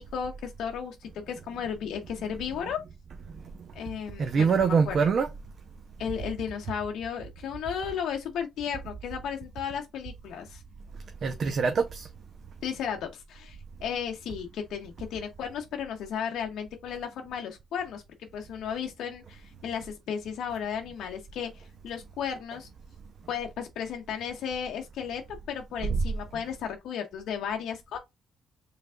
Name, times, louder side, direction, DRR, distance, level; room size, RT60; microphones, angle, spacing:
voice 1, 0.0-2.8 3.7-5.0 6.0-10.6 12.6-22.7 23.3-28.0, left 8 dB, 80° left, 0.7 m, -34 dB
voice 2, 4.2-5.3 11.2-12.1, right 5 dB, 55° right, 0.6 m, -24 dB
4.8 x 3.2 x 2.3 m
cardioid pair, 90°, 0 cm